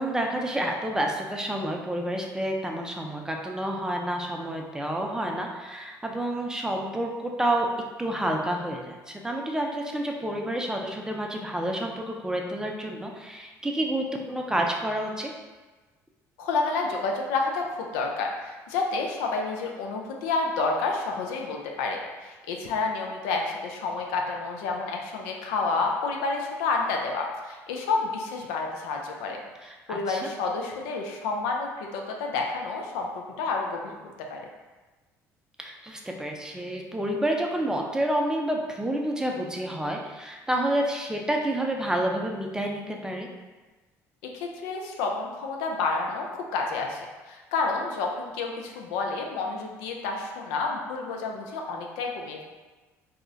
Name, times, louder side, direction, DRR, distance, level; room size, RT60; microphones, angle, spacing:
voice 1, 0.0-7.7 8.0-15.3 29.6-30.2 35.6-43.3, right 1 dB, 10° right, 1 dB, 0.4 m, -29 dB
voice 2, 16.4-29.4 29.9-33.1 33.4-34.4 44.2-52.4, left 3 dB, 85° left, 1 dB, 0.4 m, -29 dB
2.3 x 2.1 x 3.9 m, 1.3 s
supercardioid pair, 75°, 7 cm